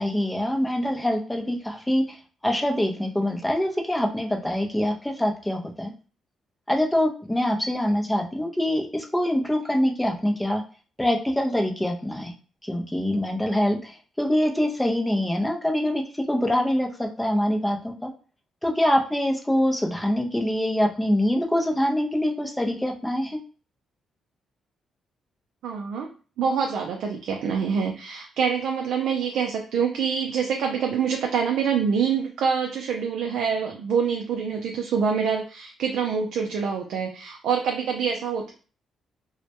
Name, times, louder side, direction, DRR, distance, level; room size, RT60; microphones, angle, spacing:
voice 1, 0.0-2.2 2.4-5.9 6.7-10.6 11.0-12.3 12.6-18.1 18.6-23.4, left 1 dB, 5° left, 2 dB, 0.5 m, -24 dB
voice 2, 25.6-26.1 26.4-38.5, right 6 dB, 80° right, 2 dB, 0.3 m, -26 dB
2.1 x 2.1 x 2.8 m, 0.38 s
cardioid pair, 85°, 0 cm